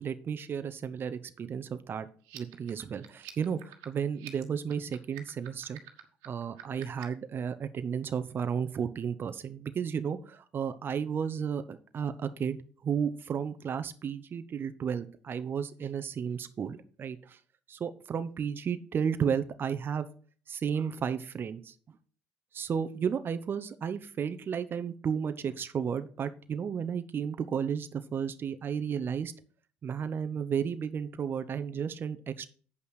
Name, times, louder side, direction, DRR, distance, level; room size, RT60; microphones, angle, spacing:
voice 1, 0.0-2.1 2.3-5.8 6.3-12.6 12.8-17.4 17.7-20.1 20.5-21.7 22.5-29.3 29.8-32.5, right 7 dB, 45° right, 10 dB, 0.8 m, -33 dB
sound 1, 2.2-7.2, right 15 dB, 85° right, 1.4 m, -49 dB
8.2 x 5.5 x 6.1 m, 0.42 s
supercardioid pair, 75°, 5 cm